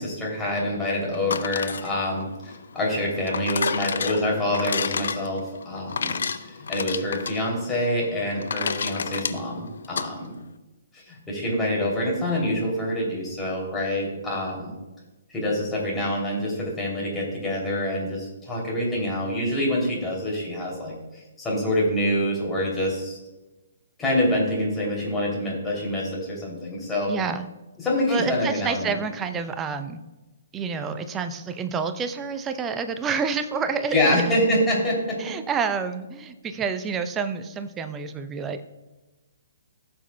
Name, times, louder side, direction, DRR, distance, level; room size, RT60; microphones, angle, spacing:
voice 1, 0.0-6.1 6.4-10.3 10.9-14.7 15.3-23.2 24.0-27.1 27.8-29.0 33.9-35.2, left 1 dB, 10° left, -4 dB, 2.9 m, -26 dB
sound 1, 1.1-10.1, left 6 dB, 60° left, 0.5 m, -31 dB
voice 2, 27.1-27.5 28.1-30.0 30.5-34.6 35.2-38.6, right 5 dB, 15° right, 9 dB, 0.6 m, -29 dB
15.5 x 7.1 x 2.2 m, 1.1 s
figure-of-eight pair, 125°, 0 cm